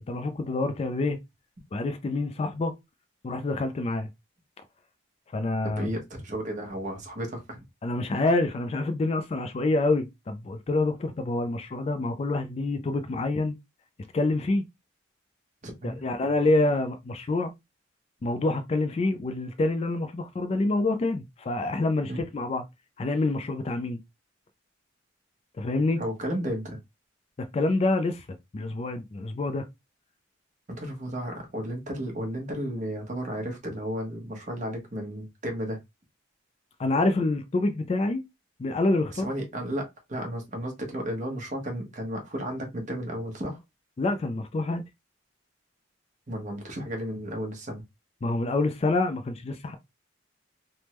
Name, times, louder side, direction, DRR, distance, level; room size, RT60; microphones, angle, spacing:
voice 1, 0.1-1.2 1.7-2.7 3.2-4.1 5.3-5.9 7.8-13.6 14.1-14.6 15.8-17.5 18.2-22.6 23.0-24.0 25.6-26.0 27.4-28.3 28.5-29.7 36.8-38.2 38.6-39.3 44.0-44.8 48.2-49.8, left 2 dB, 30° left, 0.3 m, -27 dB
voice 2, 5.8-7.6 15.6-16.0 22.1-22.2 26.0-26.8 30.7-35.8 39.1-43.6 46.3-47.8, equal, 40° right, 0.9 m, -33 dB
3.4 x 2.1 x 2.9 m
head